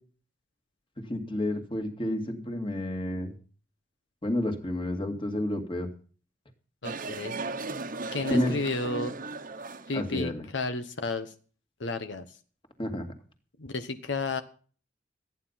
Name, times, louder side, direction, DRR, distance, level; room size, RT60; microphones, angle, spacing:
voice 1, 1.1-3.3 4.2-5.9 8.3-8.6 9.9-10.4 12.8-13.1, left 1 dB, 30° left, 5 dB, 2.3 m, -30 dB
voice 2, 6.8-7.4 8.1-9.1 9.9-11.3 11.8-12.2 13.6-14.4, left 3 dB, 80° left, 8 dB, 1.0 m, -32 dB
sound 1, 6.8-10.1, right 3 dB, 50° right, 1.1 m, -36 dB
14.0 x 9.6 x 5.7 m, 0.41 s
head